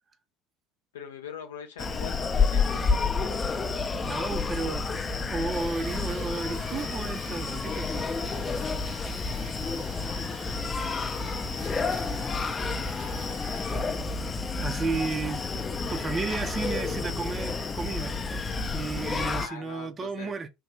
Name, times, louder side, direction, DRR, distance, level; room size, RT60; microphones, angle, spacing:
voice 1, 0.9-3.1 19.3-20.3, left 7 dB, 75° left, 0.7 m, -42 dB
Screaming, 1.8-19.5, left 4 dB, 25° left, 0.5 m, -30 dB
voice 2, 4.0-4.9 5.3-8.1 14.6-18.2 18.7-20.5, right 4 dB, 30° right, 0.5 m, -33 dB
sound 1, 5.5-13.8, right 5 dB, 60° right, 0.8 m, -49 dB
3.2 x 2.4 x 3.1 m
figure-of-eight pair, 65°, 0 cm